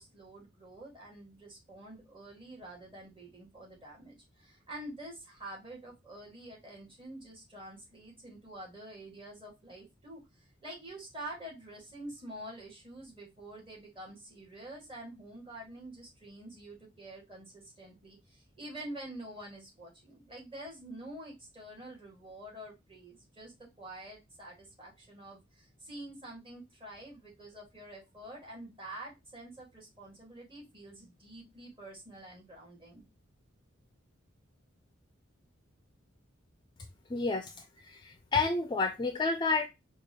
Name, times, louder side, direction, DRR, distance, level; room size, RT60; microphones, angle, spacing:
voice 1, 0.0-33.0, right 1 dB, 25° right, -2 dB, 1.6 m, -47 dB
voice 2, 37.1-39.7, left 3 dB, 25° left, 6 dB, 0.4 m, -30 dB
4.4 x 2.4 x 2.8 m, 0.23 s
head